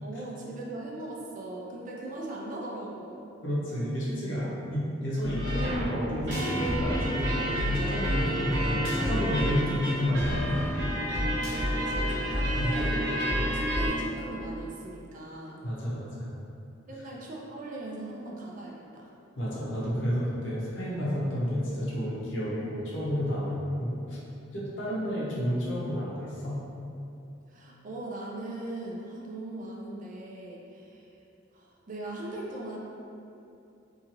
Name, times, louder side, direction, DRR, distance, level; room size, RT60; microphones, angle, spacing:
voice 1, 0.0-3.3 11.6-15.7 16.9-19.1 27.5-31.2 31.5-32.8, right 2 dB, 45° right, -3 dB, 0.4 m, -39 dB
voice 2, 3.4-10.6 12.6-12.8 15.6-16.3 19.4-24.2 24.5-26.6, equal, 70° left, -7 dB, 0.8 m, -31 dB
sound 1, 5.2-13.9, equal, 90° right, 1.0 m, -29 dB
2.7 x 2.5 x 2.9 m, 2.8 s
head